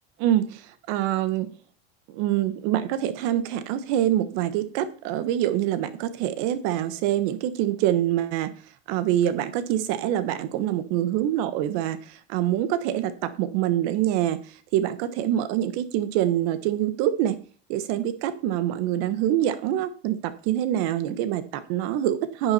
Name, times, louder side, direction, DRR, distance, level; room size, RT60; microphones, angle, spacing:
voice 1, 0.2-1.5 2.1-8.5 8.9-14.4 14.7-17.4 17.7-22.5, right 12 dB, 50° right, 12 dB, 1.4 m, -25 dB
10.5 x 9.1 x 4.3 m, 0.41 s
supercardioid pair, 170°, 30 cm